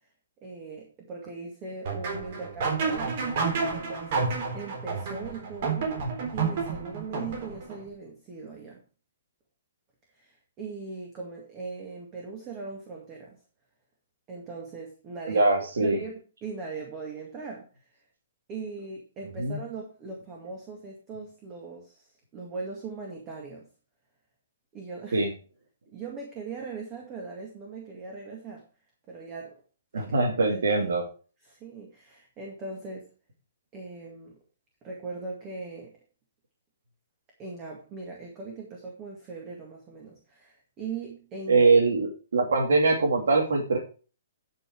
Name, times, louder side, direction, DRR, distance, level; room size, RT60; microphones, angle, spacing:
voice 1, 0.4-3.3 3.7-5.9 6.3-8.8 10.1-13.4 14.3-15.4 15.8-18.0 18.5-22.1 22.3-23.7 24.7-25.3 25.9-28.6 29.1-29.6 29.9-30.9 31.4-33.1 33.7-34.4 34.8-35.9 37.4-41.7, right 4 dB, 20° right, 0 dB, 2.1 m, -40 dB
sound 1, 1.8-7.8, right 4 dB, 45° right, 3.9 m, -30 dB
voice 2, 15.3-16.0 19.4-19.6 25.1-25.3 29.9-31.0 41.5-43.8, right 3 dB, 80° right, -1 dB, 2.8 m, -22 dB
11.0 x 5.8 x 4.8 m, 0.36 s
hypercardioid pair, 165°, 0 cm